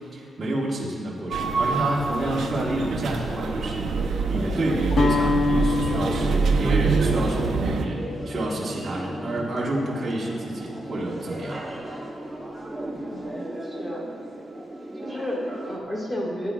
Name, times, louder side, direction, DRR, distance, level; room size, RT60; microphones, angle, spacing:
voice 1, 0.0-11.6, right 1 dB, 30° right, -6 dB, 1.3 m, -29 dB
sound 1, 1.3-15.8, right 1 dB, 10° right, 1.0 m, -36 dB
sound 2, 1.3-7.9, right 4 dB, 70° right, 0.6 m, -25 dB
Guitar, 4.9-11.0, left 4 dB, 50° left, 0.8 m, -29 dB
voice 2, 13.0-14.1 15.0-16.5, equal, 5° left, -3 dB, 1.7 m, -32 dB
16.0 x 9.2 x 2.3 m, 2.3 s
wide cardioid pair, 175°, 0 cm